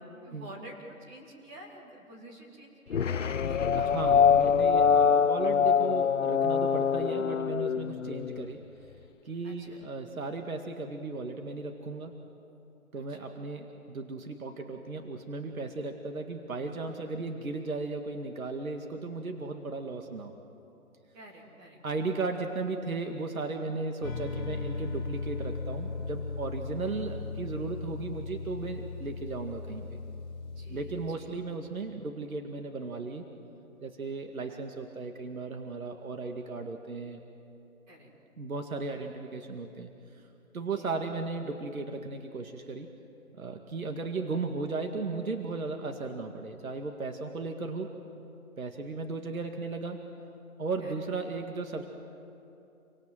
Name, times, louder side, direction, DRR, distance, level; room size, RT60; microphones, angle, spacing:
voice 1, 0.2-4.2 9.4-9.9 12.9-13.3 21.1-22.1 30.5-31.4 34.5-34.6 37.9-38.1 40.7-41.0 50.8-50.9, right 1 dB, 15° right, -3 dB, 3.0 m, -49 dB
sound 1, 2.9-8.4, left 7 dB, 60° left, 0.7 m, -24 dB
voice 2, 3.8-8.6 9.2-12.2 12.9-20.3 21.8-29.9 30.7-33.2 33.8-37.2 38.4-39.9 40.5-42.9 43.4-47.9 48.6-50.1 50.6-51.9, right 3 dB, 75° right, 4 dB, 2.2 m, -36 dB
sound 2, 24.0-31.1, left 4 dB, 10° left, 2.7 m, -37 dB
29.0 x 25.0 x 7.8 m, 2.8 s
figure-of-eight pair, 160°, 43 cm